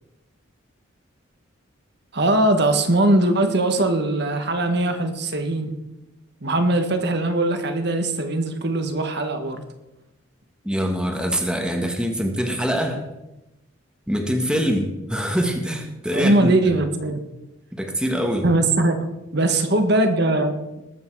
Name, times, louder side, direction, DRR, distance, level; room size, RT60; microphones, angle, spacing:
voice 1, 2.1-5.7 6.4-9.6 16.1-17.2 18.4-19.0 19.3-20.6, right 2 dB, 55° right, 7 dB, 1.6 m, -20 dB
voice 2, 10.6-13.0 14.1-16.8 17.7-18.5, equal, 5° right, 2 dB, 1.6 m, -24 dB
20.0 x 8.6 x 4.8 m, 0.97 s
head